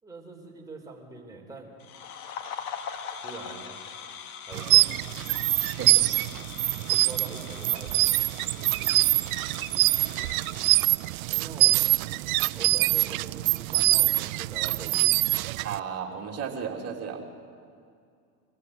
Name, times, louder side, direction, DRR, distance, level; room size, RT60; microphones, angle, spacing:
voice 1, 0.0-1.7 3.2-3.7 4.4-4.9 6.9-8.5 8.8-9.2 11.3-12.0 12.5-15.0 17.2-17.3, right 3 dB, 10° right, -1 dB, 4.3 m, -44 dB
sound 1, 1.8-10.9, left 7 dB, 65° left, 2.2 m, -42 dB
sound 2, 4.5-15.8, right 19 dB, 65° right, 0.6 m, -24 dB
voice 2, 5.6-6.2 15.6-17.2, right 7 dB, 30° right, 0 dB, 3.3 m, -34 dB
24.5 x 15.0 x 8.0 m, 2.3 s
hypercardioid pair, 95°, 46 cm